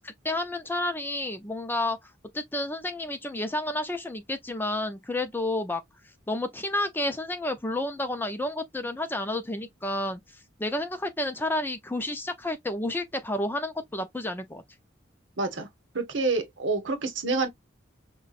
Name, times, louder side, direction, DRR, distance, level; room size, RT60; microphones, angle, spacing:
voice 1, 0.0-2.0 2.3-5.8 6.3-10.2 10.6-14.6, left 1 dB, 10° left, 0.4 m, -30 dB
voice 2, 15.4-15.7 15.9-17.5, right 3 dB, 70° right, 1.0 m, -27 dB
5.5 x 2.2 x 2.4 m
head